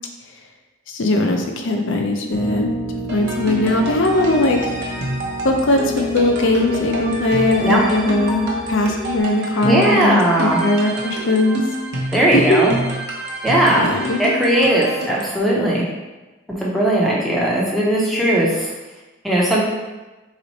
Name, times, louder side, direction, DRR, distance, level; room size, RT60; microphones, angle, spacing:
voice 1, 0.9-2.7 3.1-4.6 5.4-11.6 12.3-12.6 13.8-14.2, left 2 dB, 60° left, 3 dB, 0.5 m, -19 dB
Piano, 2.3-9.2, left 2 dB, 85° right, 0.5 m, -29 dB
sound 1, 3.1-15.4, right 1 dB, 50° right, 0.8 m, -28 dB
voice 2, 9.6-10.6 12.1-12.8 13.4-13.9 14.2-15.8 16.6-18.7 19.2-19.6, right 1 dB, ahead, -5 dB, 0.6 m, -18 dB
4.0 x 3.1 x 4.0 m, 1.1 s
head